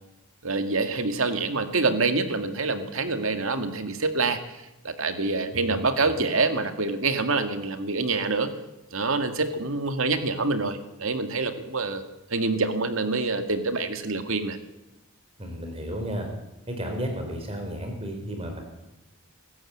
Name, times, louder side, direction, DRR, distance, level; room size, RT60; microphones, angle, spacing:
voice 1, 0.4-4.4 4.8-8.5 8.9-12.0 12.3-14.6, right 3 dB, 75° right, 7 dB, 2.0 m, -26 dB
voice 2, 15.4-16.3 16.7-18.6, equal, 25° right, 3 dB, 4.8 m, -32 dB
23.0 x 13.5 x 8.7 m, 0.96 s
head